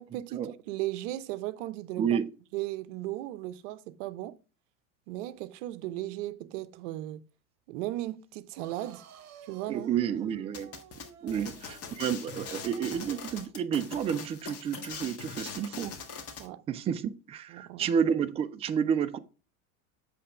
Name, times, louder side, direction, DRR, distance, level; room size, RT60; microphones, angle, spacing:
voice 1, 0.0-2.2 2.5-4.4 5.1-7.2 7.7-9.0 9.5-9.9 11.2-11.5 16.4-16.7 17.5-17.9, right 15 dB, 60° right, 0.7 m, -36 dB
voice 2, 2.0-2.3 9.7-10.7 11.2-15.9 16.7-19.2, right 8 dB, 15° right, 0.3 m, -30 dB
sound 1, 8.6-13.5, right 7 dB, 40° right, 1.3 m, -53 dB
sound 2, 10.5-16.5, left 5 dB, 35° left, 1.6 m, -42 dB
7.9 x 3.4 x 4.7 m
hypercardioid pair, 95°, 42 cm